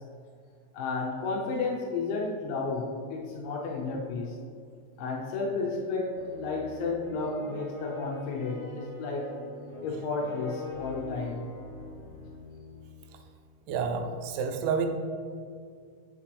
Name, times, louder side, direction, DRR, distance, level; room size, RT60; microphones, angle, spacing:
voice 1, 0.7-4.4 5.0-9.3 9.8-11.4, left 3 dB, 80° left, -2 dB, 2.9 m, -32 dB
sound 1, 6.1-13.1, left 3 dB, 55° left, 2.0 m, -43 dB
voice 2, 13.7-14.9, right 6 dB, 85° right, 5 dB, 3.2 m, -29 dB
8.1 x 6.7 x 3.2 m, 2.2 s
omnidirectional pair, 5.8 m